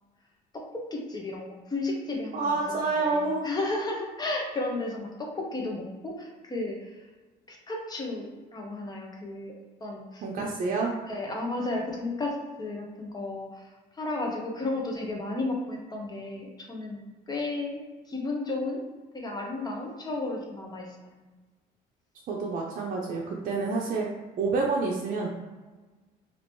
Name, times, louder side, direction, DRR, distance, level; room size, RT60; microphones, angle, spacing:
voice 1, 0.9-7.0 7.5-9.5 9.8-10.2 11.0-17.0 17.3-17.8 18.1-18.8 19.1-21.2, left 2 dB, 25° left, -1 dB, 1.0 m, -33 dB
voice 2, 2.3-3.5 10.2-11.0 22.3-24.1 24.4-25.3, right 3 dB, 55° right, -2 dB, 0.6 m, -28 dB
3.0 x 2.9 x 4.4 m, 1.3 s
cardioid pair, 110°, 17 cm